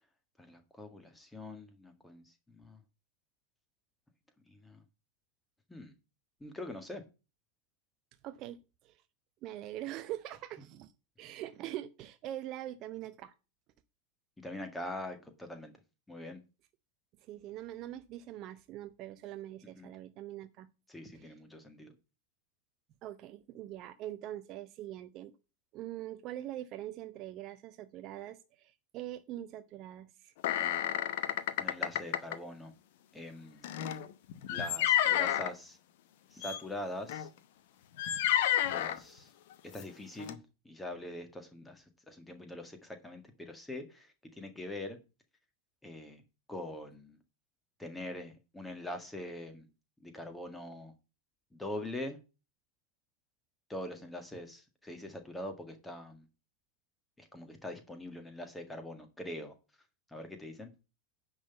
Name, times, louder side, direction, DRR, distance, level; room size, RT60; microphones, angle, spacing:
voice 1, 0.4-2.8 4.5-4.9 5.7-5.9 6.4-7.0 14.4-15.7 16.1-16.4 19.8-19.9 20.9-22.0 31.6-32.7 33.1-33.7 34.5-35.8 36.3-37.3 38.7-39.3 39.7-45.0 45.8-46.2 46.5-47.2 47.8-49.7 50.0-50.9 51.5-52.2 53.7-56.3 57.2-59.6 60.1-60.7, left 1 dB, 5° left, 6 dB, 1.7 m, -43 dB
voice 2, 8.2-8.6 8.8-9.0 9.4-10.9 11.2-13.3 17.2-20.7 23.0-25.3 25.7-30.3, right 13 dB, 35° right, 11 dB, 0.6 m, -43 dB
sound 1, 30.4-32.4 33.6-35.5 36.4-36.6 37.1-37.3 38.0-39.0 39.8-39.9 40.2-40.3, left 11 dB, 50° left, 0.8 m, -30 dB
10.0 x 4.0 x 7.3 m, 0.31 s
figure-of-eight pair, 90°, 0 cm